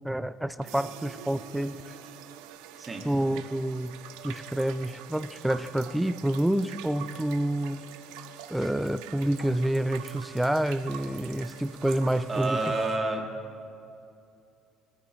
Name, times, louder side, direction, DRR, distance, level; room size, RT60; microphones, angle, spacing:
voice 1, 0.0-1.9 3.0-4.0 4.2-7.9 8.5-12.6, right 1 dB, 5° right, 14 dB, 0.4 m, -28 dB
sound 1, 0.6-13.0, right 10 dB, 85° right, 0.7 m, -45 dB
voice 2, 12.3-13.3, right 2 dB, 25° right, 1 dB, 1.9 m, -29 dB
21.5 x 8.9 x 3.1 m, 2.6 s
supercardioid pair, 90°, 0 cm